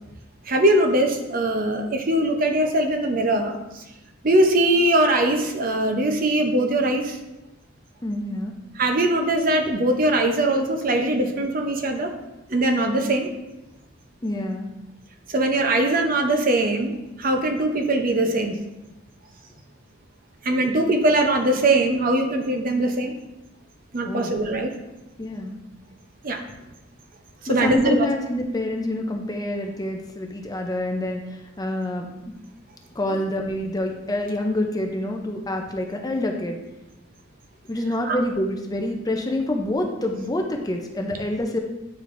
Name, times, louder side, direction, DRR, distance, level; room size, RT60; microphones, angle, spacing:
voice 1, 0.5-3.8 4.2-7.2 8.8-12.1 12.5-13.3 15.3-18.6 20.4-23.2 23.9-24.7 26.2-26.4 27.4-28.1 38.1-38.2, right 1 dB, 45° right, 4 dB, 0.6 m, -21 dB
voice 2, 8.0-8.5 14.2-14.7 24.0-24.3 25.2-25.6 27.5-32.1 32.9-36.6 37.7-41.6, left 1 dB, 20° left, 3 dB, 0.5 m, -27 dB
8.1 x 4.8 x 2.5 m, 0.98 s
head